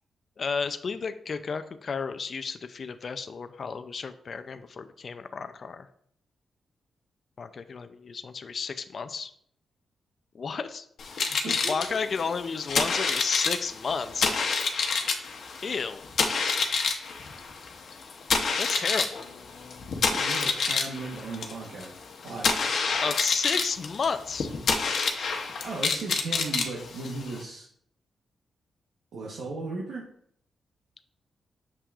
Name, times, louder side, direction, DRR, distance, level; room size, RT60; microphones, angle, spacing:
voice 1, 0.4-5.9 7.4-9.3 10.3-10.9 11.1-14.4 15.6-16.0 18.6-19.3 23.0-24.5, left 5 dB, 50° left, 10 dB, 0.4 m, -32 dB
sound 1, 11.0-27.4, left 5 dB, 70° left, 0.9 m, -28 dB
voice 2, 11.4-11.7 20.1-21.9 22.2-22.5 25.6-27.7 29.1-30.0, right 3 dB, 85° right, -4 dB, 1.1 m, -36 dB
6.8 x 5.8 x 2.4 m, 0.64 s
cardioid pair, 95°, 0 cm